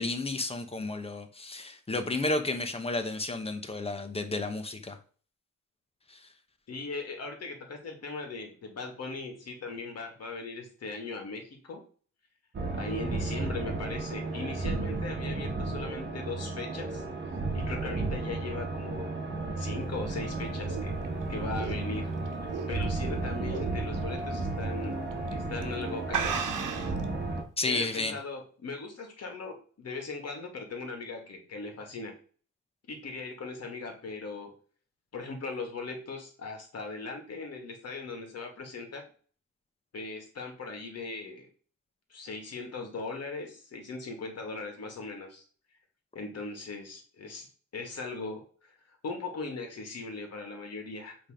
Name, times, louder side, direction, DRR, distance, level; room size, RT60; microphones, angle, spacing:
voice 1, 0.0-5.0 6.1-6.2 27.6-28.1, left 2 dB, 20° left, 0.9 m, -32 dB
voice 2, 6.7-11.8 12.7-19.1 19.6-21.0 21.3-22.1 22.4-24.9 25.3-26.6 27.6-32.1 32.9-34.5 35.1-39.0 39.9-41.5 42.1-45.4 46.1-47.5 47.7-48.8 49.0-51.2, left 3 dB, 55° left, 2.1 m, -39 dB
sound 1, 12.5-27.4, right 3 dB, 35° right, 1.2 m, -33 dB
sound 2, 20.0-23.1 23.5-23.8 24.2-24.3 25.1-25.3 25.6-25.7 26.1-27.0, right 7 dB, 90° right, 1.1 m, -34 dB
8.2 x 3.5 x 5.0 m
wide cardioid pair, 175°, 31 cm